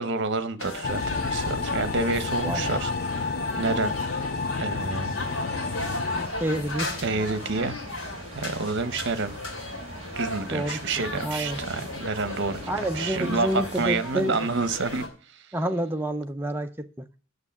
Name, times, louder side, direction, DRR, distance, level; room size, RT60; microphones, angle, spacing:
voice 1, 0.0-4.0 4.6-5.2 7.0-7.8 8.3-9.4 10.2-15.5, right 3 dB, 55° right, 0.9 m, -29 dB
sound 1, 0.6-15.1, left 2 dB, 80° left, 2.8 m, -36 dB
sound 2, 0.8-6.3, left 4 dB, 45° left, 0.4 m, -30 dB
voice 2, 2.4-2.8 6.4-7.0 10.5-10.8 11.2-11.6 12.7-14.4 15.5-17.1, right 1 dB, 10° right, 0.6 m, -28 dB
sound 3, 5.2-14.0, right 2 dB, 30° right, 1.5 m, -43 dB
9.6 x 6.6 x 7.2 m
head